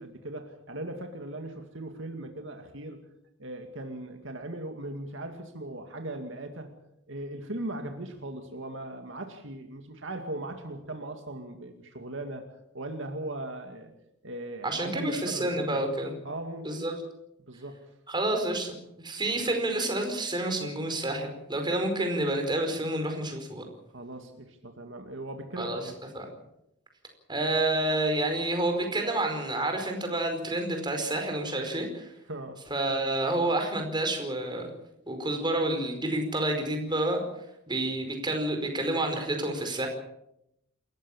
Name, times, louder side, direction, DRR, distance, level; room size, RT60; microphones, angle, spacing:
voice 1, 0.0-3.0 3.4-6.7 7.1-13.9 14.2-15.9 16.2-16.7 17.5-17.8 19.4-19.5 23.9-25.9 32.3-32.6, right 1 dB, 65° right, 5 dB, 2.3 m, -39 dB
voice 2, 14.6-16.1 16.6-16.9 18.1-23.6 25.6-26.3 27.3-32.1 32.7-34.7 35.1-37.2 37.7-39.9, right 1 dB, 25° right, 4 dB, 4.9 m, -29 dB
28.0 x 14.5 x 7.3 m, 0.81 s
head